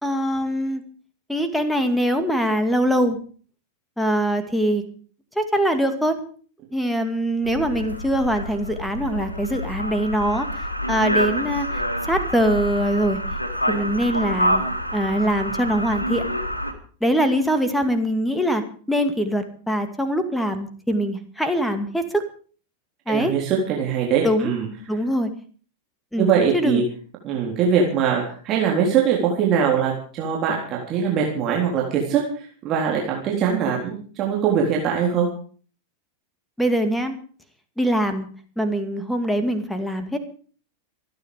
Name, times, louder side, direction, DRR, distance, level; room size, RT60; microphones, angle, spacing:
voice 1, 0.0-0.8 1.3-3.2 4.0-4.8 5.4-6.2 6.7-10.5 10.9-13.2 13.7-14.6 14.9-16.2 17.0-18.6 18.9-22.2 23.1-23.3 24.2-24.5 24.9-25.3 26.1-26.8 36.6-37.2 37.8-38.3 38.6-40.2, equal, 5° left, 8 dB, 2.3 m, -23 dB
sound 1, 7.4-16.7, equal, 85° left, 2.2 m, -27 dB
voice 2, 23.1-24.7 26.2-26.8 27.2-35.3, right 7 dB, 35° right, -1 dB, 3.8 m, -22 dB
26.5 x 9.6 x 5.1 m, 0.43 s
figure-of-eight pair, 90°, 0 cm